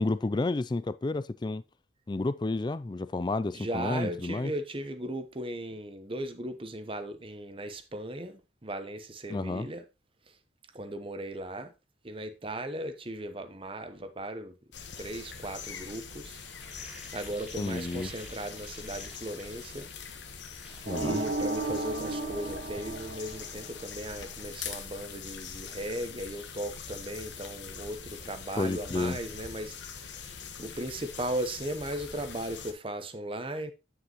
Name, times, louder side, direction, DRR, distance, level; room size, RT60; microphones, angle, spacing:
voice 1, 0.0-1.6 2.1-4.5 9.3-9.7 17.6-18.1 20.9-21.2 28.6-29.2, left 2 dB, 25° left, 0.3 m, -30 dB
voice 2, 3.5-9.8 10.7-11.7 12.0-14.5 15.0-16.4 17.1-19.9 21.0-30.3 30.6-33.7, right 1 dB, 30° right, 0.9 m, -37 dB
sound 1, 14.7-32.7, left 6 dB, 70° left, 1.3 m, -43 dB
sound 2, 16.2-20.1 20.4-21.3 21.7-22.7 23.1-26.1 26.4-26.7, equal, 5° right, 2.3 m, -54 dB
sound 3, 20.9-23.8, right 2 dB, 55° right, 1.0 m, -33 dB
10.0 x 6.3 x 3.0 m
head